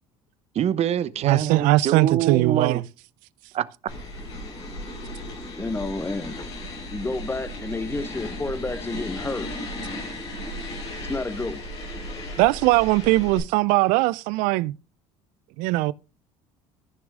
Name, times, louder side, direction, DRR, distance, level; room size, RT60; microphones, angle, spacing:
voice 1, 0.5-2.8 3.5-3.9, right 10 dB, 50° right, 0.8 m, -25 dB
voice 2, 1.2-2.8 12.4-14.7 15.6-15.9, right 19 dB, 75° right, 0.5 m, -20 dB
sound 1, 3.9-13.4, left 1 dB, 90° left, 6.7 m, -35 dB
voice 3, 5.6-6.4 6.9-9.5 11.0-11.6, left 3 dB, 15° left, 1.3 m, -30 dB
14.0 x 6.1 x 3.7 m
supercardioid pair, 75°, 14 cm